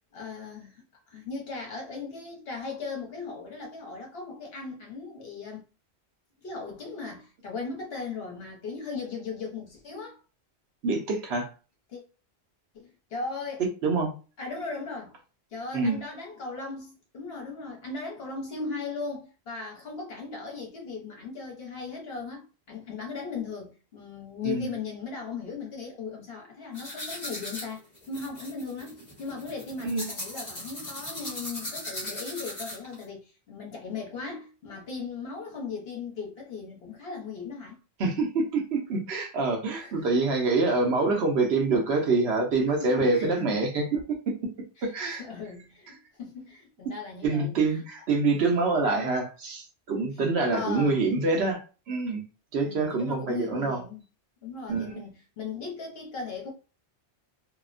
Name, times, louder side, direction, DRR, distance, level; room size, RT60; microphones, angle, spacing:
voice 1, 0.1-5.6 6.4-10.2 11.9-12.0 12.7-13.6 14.4-15.2 15.5-37.8 39.7-40.1 42.7-43.3 44.8-47.8 48.3-48.4 50.1-50.2 50.5-51.0 52.6-54.0 54.4-56.5, left 4 dB, 65° left, 1.1 m, -38 dB
voice 2, 10.8-11.5 13.8-14.1 15.7-16.0 24.4-24.7 29.8-30.1 38.0-44.0 44.8-45.2 47.2-51.6 51.9-52.2 52.5-53.8 54.7-55.0, right 3 dB, 75° right, 1.0 m, -26 dB
sound 1, 26.7-33.0, left 1 dB, 30° left, 1.1 m, -38 dB
2.8 x 2.1 x 2.4 m
omnidirectional pair, 1.1 m